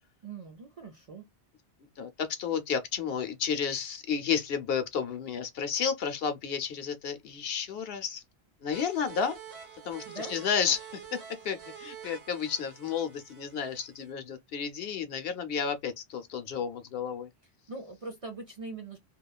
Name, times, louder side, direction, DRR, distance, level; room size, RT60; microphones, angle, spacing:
voice 1, 0.2-1.3 10.1-10.3 17.7-19.0, right 3 dB, 45° right, 0.5 m, -41 dB
voice 2, 2.0-8.2 8.6-9.4 9.8-11.2 11.4-17.3, left 7 dB, 65° left, 0.8 m, -32 dB
sound 1, 8.7-14.1, right 7 dB, 70° right, 1.4 m, -48 dB
2.9 x 2.2 x 2.3 m
omnidirectional pair, 1.1 m